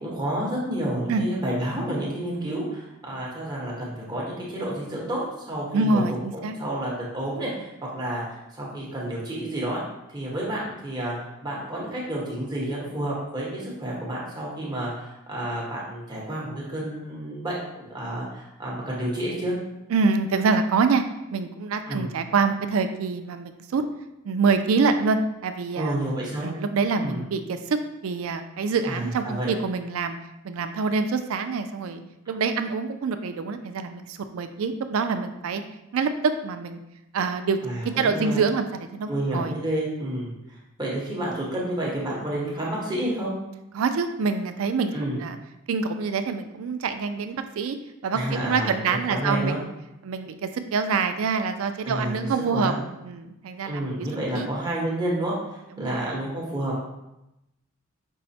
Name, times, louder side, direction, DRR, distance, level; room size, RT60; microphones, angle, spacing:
voice 1, 0.0-6.0 6.6-9.8 10.1-19.6 21.9-22.1 25.8-26.5 27.0-27.2 28.9-29.5 37.6-38.4 39.1-40.3 40.8-43.3 44.9-45.2 48.1-49.6 51.8-52.8 53.6-55.3 55.8-56.8, right 1 dB, 20° right, -5 dB, 1.0 m, -30 dB
voice 2, 5.7-6.6 19.9-21.0 21.3-23.8 24.2-26.0 26.4-30.2 30.4-32.0 32.3-35.6 35.9-36.8 37.1-37.6 37.8-39.6 43.7-44.9 45.2-45.4 45.7-47.8 48.0-49.7 50.0-52.7 53.0-54.1 54.3-54.5 55.8-56.0, right 4 dB, 75° right, 8 dB, 0.4 m, -26 dB
5.4 x 2.1 x 4.1 m, 0.90 s
head